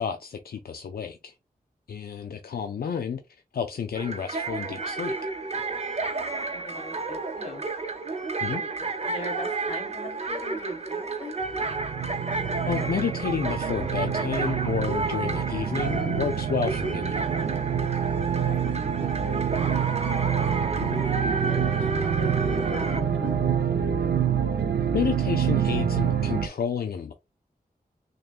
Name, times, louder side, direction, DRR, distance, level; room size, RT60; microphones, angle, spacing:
voice 1, 0.0-1.3 1.9-5.2 8.4-8.6 12.6-17.2 20.8-21.0 24.9-27.1, left 7 dB, 75° left, 0.4 m, -30 dB
sound 1, 3.9-23.0, right 3 dB, 40° right, 0.8 m, -31 dB
voice 2, 6.5-7.6 8.5-11.3 18.3-20.0 21.0-23.4, left 2 dB, 40° left, 2.0 m, -41 dB
sound 2, 11.4-26.5, right 8 dB, 90° right, 0.4 m, -27 dB
6.3 x 2.2 x 2.4 m
wide cardioid pair, 80°, 16 cm